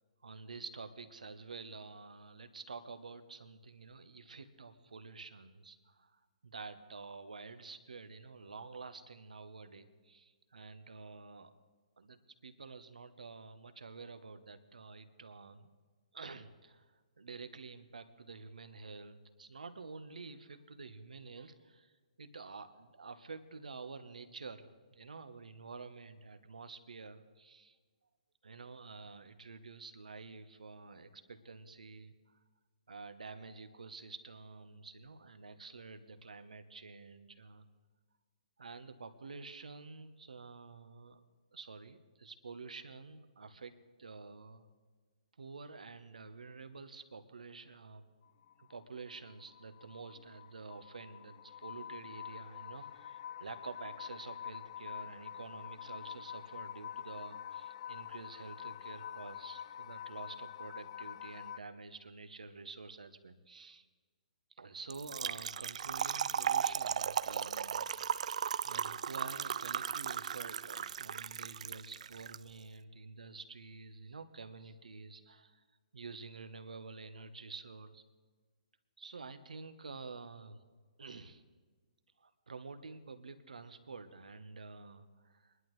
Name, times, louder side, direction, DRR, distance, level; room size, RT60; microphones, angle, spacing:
voice 1, 0.2-11.5 12.0-15.7 16.1-16.9 17.2-21.9 22.2-27.8 28.4-32.1 32.9-37.7 38.6-41.2 41.5-43.7 44.0-44.6 45.4-48.0 48.6-63.8 64.6-75.6 75.9-78.0 79.0-80.6 81.0-81.4 82.2-85.5, right 4 dB, 80° right, 9 dB, 1.1 m, -49 dB
sound 1, 48.2-61.6, left 9 dB, 45° left, 0.3 m, -46 dB
Trickle dribble / Fill (with liquid), 64.9-72.4, right 8 dB, 60° right, 0.3 m, -36 dB
22.5 x 11.0 x 3.2 m, 1.5 s
hypercardioid pair, 140°, 4 cm